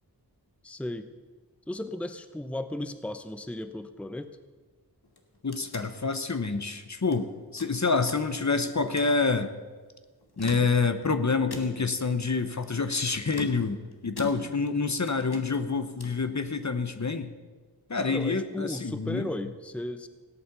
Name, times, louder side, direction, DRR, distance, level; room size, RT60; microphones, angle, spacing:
voice 1, 0.6-1.1 1.7-4.4 18.1-20.1, left 1 dB, 5° left, 10 dB, 0.7 m, -35 dB
sound 1, 5.0-7.2 7.6-8.5 8.8-9.2 10.2-11.1 11.5-12.0 13.2-14.8 15.1-16.3, left 3 dB, 80° left, 1.4 m, -42 dB
voice 2, 5.4-9.5 10.4-17.3 17.9-19.3, left 4 dB, 45° left, 9 dB, 0.9 m, -27 dB
17.0 x 8.6 x 6.8 m, 1.4 s
wide cardioid pair, 45°, 39 cm